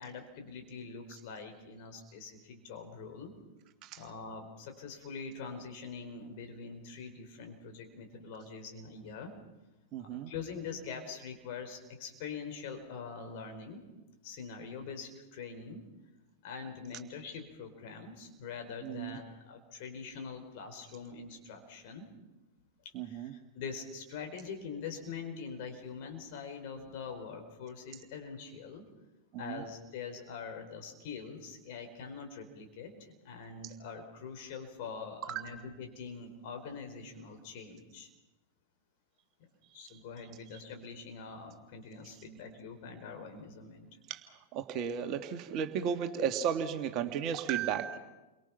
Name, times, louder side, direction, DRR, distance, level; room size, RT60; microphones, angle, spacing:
voice 1, 0.0-3.3 4.0-9.3 10.0-13.8 14.2-15.8 16.4-22.1 23.0-28.8 29.4-38.1 39.7-43.9, left 5 dB, 50° left, 4 dB, 4.6 m, -44 dB
voice 2, 9.9-10.3 18.8-19.2 22.9-23.3 29.3-29.6 39.9-40.0 44.1-48.0, right 8 dB, 40° right, 6 dB, 1.9 m, -34 dB
29.5 x 23.5 x 5.9 m, 1.1 s
figure-of-eight pair, 90°, 0 cm